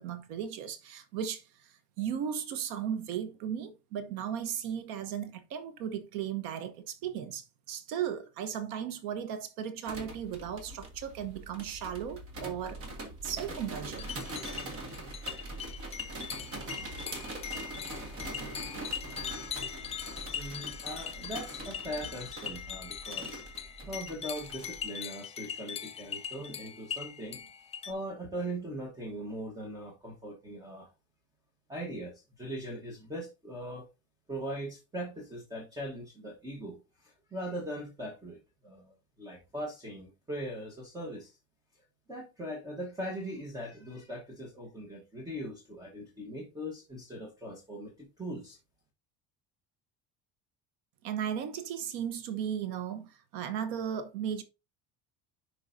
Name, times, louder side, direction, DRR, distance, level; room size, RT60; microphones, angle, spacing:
voice 1, 0.0-12.8 13.2-14.1 16.5-17.2 17.9-18.1 51.0-54.4, right 8 dB, 75° right, 1.1 m, -36 dB
sound 1, 9.8-24.8, right 2 dB, 40° right, 1.8 m, -43 dB
sound 2, 14.0-27.9, left 8 dB, 20° left, 0.3 m, -41 dB
voice 2, 20.3-23.4 23.9-27.5 27.9-30.9 31.7-33.9 34.3-41.3 42.1-48.6, right 1 dB, 10° right, 1.1 m, -40 dB
10.5 x 4.7 x 2.6 m
cardioid pair, 170°, 37 cm